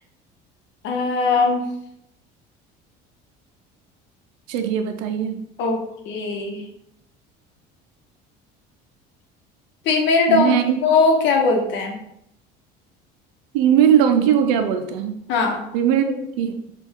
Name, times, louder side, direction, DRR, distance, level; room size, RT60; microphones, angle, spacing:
voice 1, 0.8-1.7 5.6-6.6 9.8-11.9 15.3-15.6, left 4 dB, 60° left, 3 dB, 0.9 m, -20 dB
voice 2, 4.5-5.4 10.3-10.6 13.5-15.2 15.7-16.6, right 9 dB, 85° right, 7 dB, 0.5 m, -19 dB
4.2 x 2.4 x 3.6 m, 0.78 s
supercardioid pair, 90°, 21 cm